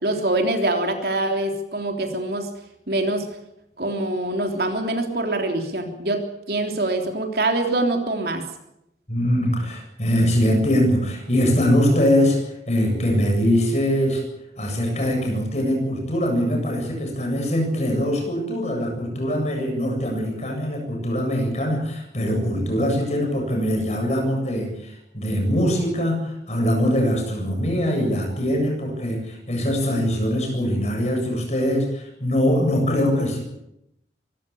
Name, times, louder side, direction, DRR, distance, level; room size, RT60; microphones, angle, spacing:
voice 1, 0.0-2.5 2.9-3.3 3.8-8.4, right 2 dB, 60° right, 4 dB, 3.3 m, -24 dB
voice 2, 9.1-12.4 12.7-14.2 14.6-33.4, equal, 40° left, 2 dB, 7.7 m, -22 dB
24.5 x 15.5 x 8.7 m, 0.82 s
head